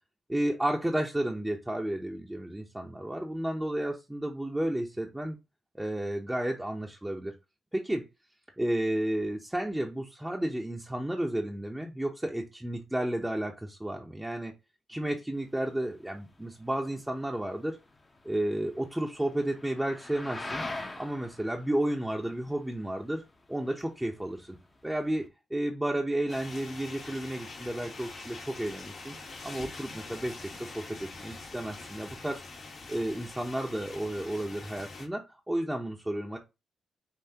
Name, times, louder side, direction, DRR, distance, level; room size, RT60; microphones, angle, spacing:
voice 1, 0.3-5.4 5.7-7.3 7.7-8.0 8.6-14.5 14.9-17.8 18.2-20.6 21.0-23.2 23.5-24.5 24.8-29.1 29.4-32.4 32.9-36.4, right 1 dB, 10° right, 0 dB, 0.9 m, -32 dB
sound 1, 15.4-25.3, left 2 dB, 25° left, 0.9 m, -45 dB
sound 2, 26.3-35.1, left 3 dB, 55° left, 1.4 m, -44 dB
5.6 x 2.9 x 2.9 m, 0.25 s
cardioid pair, 75°, 0 cm